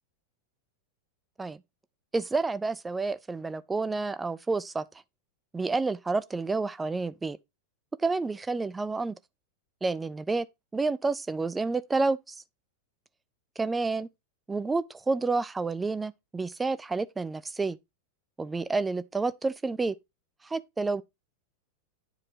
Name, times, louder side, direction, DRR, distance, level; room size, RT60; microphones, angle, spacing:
voice 1, 2.1-4.8 5.5-7.4 8.0-9.1 9.8-10.5 10.7-12.4 13.6-14.1 14.5-17.8 18.4-19.9 20.4-21.0, right 3 dB, 10° right, 0.4 m, -29 dB
9.5 x 4.8 x 2.8 m
figure-of-eight pair, 90°, 0 cm